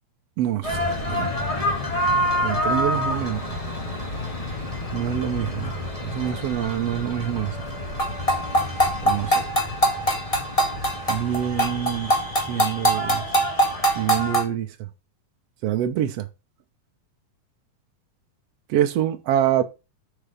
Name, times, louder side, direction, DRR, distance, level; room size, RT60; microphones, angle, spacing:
voice 1, 0.4-1.3 2.4-3.4 4.9-5.7 6.0-7.6 9.0-9.5 11.1-12.1 12.5-13.2 13.9-14.9 15.6-16.3 18.7-19.6, right 11 dB, 70° right, 1.6 m, -26 dB
sound 1, 0.6-14.4, equal, 15° left, 1.3 m, -25 dB
6.9 x 6.8 x 5.0 m
omnidirectional pair, 3.5 m